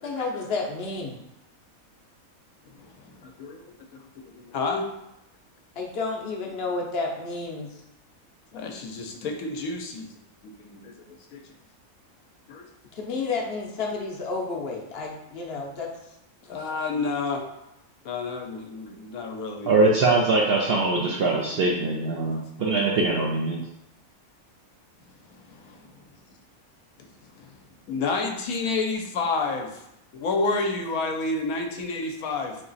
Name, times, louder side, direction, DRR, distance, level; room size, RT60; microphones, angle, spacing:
voice 1, 0.0-1.1 5.8-7.7 12.9-15.9 16.4-16.5, left 3 dB, 55° left, -1 dB, 0.8 m, -31 dB
voice 2, 2.7-3.7 4.4-4.9 8.5-10.1 10.4-10.9 11.3-11.4 12.5-12.6 16.5-17.4 18.0-19.7 22.2-22.3 25.4-26.0 27.0-27.1 27.4-27.5 27.9-29.7 30.1-32.6, left 3 dB, 80° left, 3 dB, 1.1 m, -30 dB
voice 3, 19.7-23.6, right 3 dB, 70° right, -2 dB, 0.6 m, -22 dB
3.7 x 2.9 x 4.0 m, 0.83 s
omnidirectional pair, 1.5 m